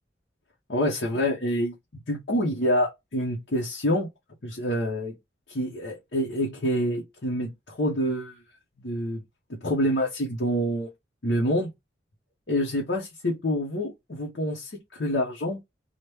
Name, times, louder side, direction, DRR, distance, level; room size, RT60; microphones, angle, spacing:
voice 1, 0.7-1.7 2.1-4.1 4.4-5.2 5.5-8.4 8.8-9.2 9.5-10.9 11.2-11.7 12.5-15.6, equal, 65° left, 0.8 m, -27 dB
3.0 x 2.1 x 3.3 m
head